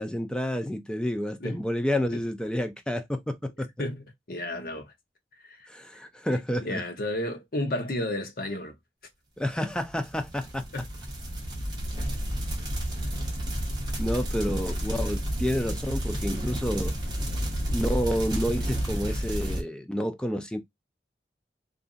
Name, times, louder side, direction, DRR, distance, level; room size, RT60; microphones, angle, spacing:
voice 1, 0.0-3.7 5.7-6.8 9.4-10.7 14.0-17.0 17.7-20.6, equal, 5° left, 0.3 m, -29 dB
voice 2, 3.8-4.9 5.4-6.0 6.6-8.7 10.7-10.8, left 1 dB, 55° left, 0.8 m, -32 dB
sound 1, 9.8-19.6, equal, 25° right, 0.9 m, -31 dB
2.9 x 2.5 x 2.4 m
head